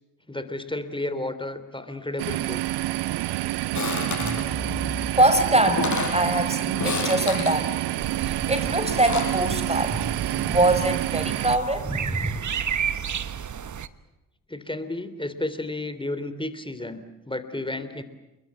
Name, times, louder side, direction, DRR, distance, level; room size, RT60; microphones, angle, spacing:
voice 1, 0.3-2.8 14.5-18.0, left 2 dB, 10° left, 11 dB, 3.2 m, -32 dB
sound 1, 2.2-11.6, right 16 dB, 60° right, 0.8 m, -28 dB
sound 2, 3.7-4.4 5.3-5.4 5.7-6.2 6.8-7.6 8.7-9.4, left 4 dB, 40° left, 7.8 m, -29 dB
voice 2, 4.2-12.4, right 1 dB, 15° right, 10 dB, 5.1 m, -24 dB
sound 3, 8.0-13.9, right 8 dB, 40° right, 1.3 m, -32 dB
29.5 x 22.0 x 7.6 m, 0.98 s
hypercardioid pair, 45°, 45 cm